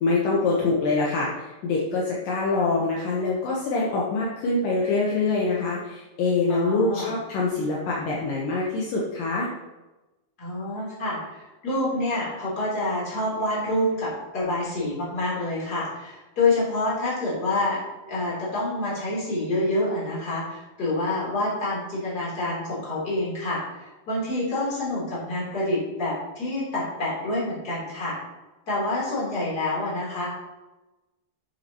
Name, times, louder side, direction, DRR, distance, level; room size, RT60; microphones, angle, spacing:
voice 1, 0.0-9.5, left 3 dB, 70° left, -4 dB, 2.6 m, -25 dB
voice 2, 6.5-7.1 10.4-17.8 18.1-28.2 28.7-30.3, left 2 dB, 25° left, -6 dB, 3.6 m, -27 dB
11.5 x 7.3 x 3.0 m, 1.1 s
omnidirectional pair, 4.4 m